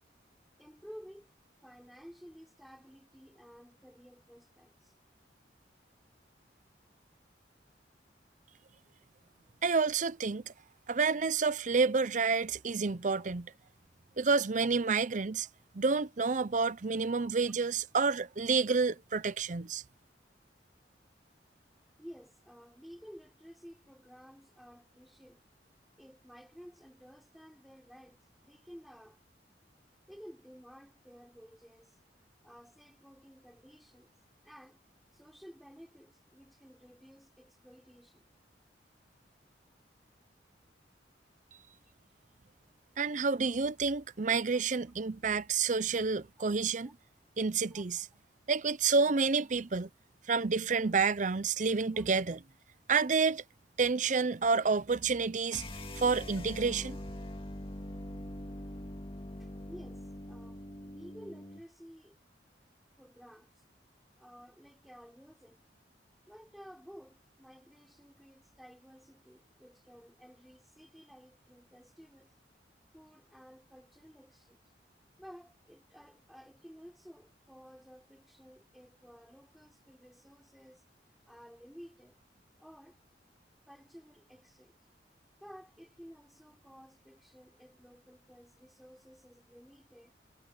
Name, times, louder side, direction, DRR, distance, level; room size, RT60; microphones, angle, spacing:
voice 1, 0.6-1.3 1.6-4.9 17.2-17.3 22.0-25.4 26.0-29.2 30.1-32.0 32.4-34.1 34.4-34.8 35.1-38.2 46.4-46.5 46.8-46.9 47.7-47.8 51.9-52.1 59.4-62.2 63.0-63.6 64.2-65.6 66.3-72.4 72.9-74.6 75.2-80.8 81.2-82.2 82.6-83.0 83.7-84.8 85.4-90.1, equal, ahead, 3.6 m, -54 dB
voice 2, 9.6-10.4 10.9-13.5 14.2-15.5 15.7-19.8 43.0-46.9 47.4-48.1 48.5-49.9 50.3-52.4 52.9-53.4 53.8-55.6 56.0-57.0, right 4 dB, 45° right, 0.6 m, -29 dB
sound 1, 55.5-61.7, left 1 dB, 30° left, 2.3 m, -43 dB
head